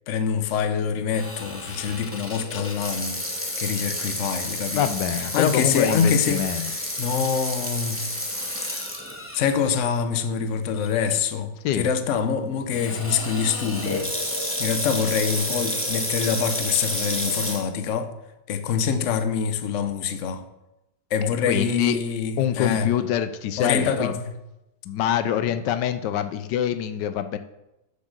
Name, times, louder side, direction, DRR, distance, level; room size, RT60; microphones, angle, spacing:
voice 1, 0.1-3.2 3.6-4.9 5.2-6.7 7.0-8.0 8.6-8.8 9.3-14.1 14.6-18.1 18.5-20.4 21.1-22.9 23.6-24.2, left 6 dB, 55° left, 1.0 m, -25 dB
Water tap faucet / Sink (filling or washing), 1.1-9.5 10.0-10.1 10.9-11.1 12.7-17.6, left 1 dB, 10° left, 1.2 m, -30 dB
voice 2, 4.8-6.7 11.6-11.9 21.5-22.0 22.4-24.1 24.9-27.4, left 10 dB, 80° left, 1.2 m, -25 dB
7.6 x 7.2 x 6.5 m
omnidirectional pair, 1.9 m